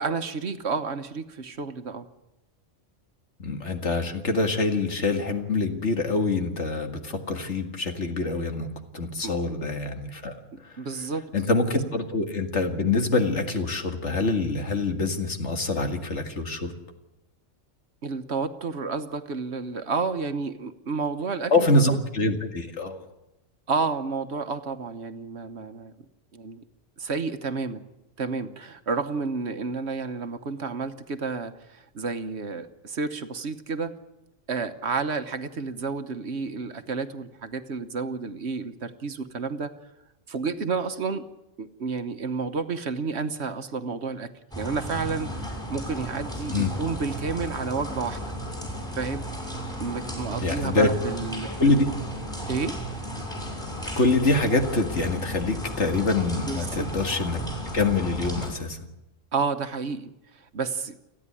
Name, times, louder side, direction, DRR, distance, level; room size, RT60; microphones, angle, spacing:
voice 1, 0.0-2.1 9.2-9.3 10.8-11.2 18.0-21.7 23.7-25.9 26.3-26.6 27.0-27.8 28.2-33.9 34.5-39.7 40.3-41.2 41.6-48.3 48.9-49.2 49.7-51.8 52.5-52.7 56.5-56.9 59.3-61.0, right 4 dB, 60° right, 9 dB, 1.3 m, -31 dB
voice 2, 3.4-10.4 11.3-16.7 21.5-23.0 46.5-46.7 50.4-50.9 51.6-51.9 54.0-57.4 57.7-58.8, left 3 dB, 65° left, 5 dB, 2.3 m, -25 dB
sound 1, 44.5-58.5, equal, 5° left, 6.1 m, -34 dB
29.5 x 10.0 x 9.9 m, 0.92 s
omnidirectional pair, 1.3 m